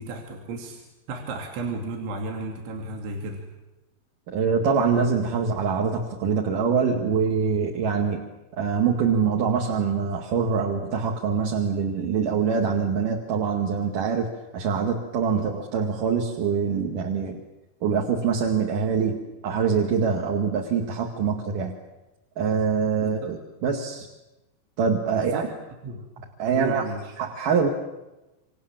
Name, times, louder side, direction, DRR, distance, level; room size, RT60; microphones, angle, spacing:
voice 1, 0.0-3.5 15.3-15.4 23.0-23.3 25.1-25.5 25.8-27.1, right 2 dB, 75° right, 1 dB, 5.0 m, -34 dB
voice 2, 4.3-8.2 8.6-17.4 17.8-19.2 19.4-21.7 22.4-24.1 24.8-25.5 26.4-26.8 27.2-27.7, right 6 dB, 55° right, 0 dB, 3.2 m, -24 dB
28.5 x 27.0 x 7.5 m, 1.0 s
omnidirectional pair, 5.4 m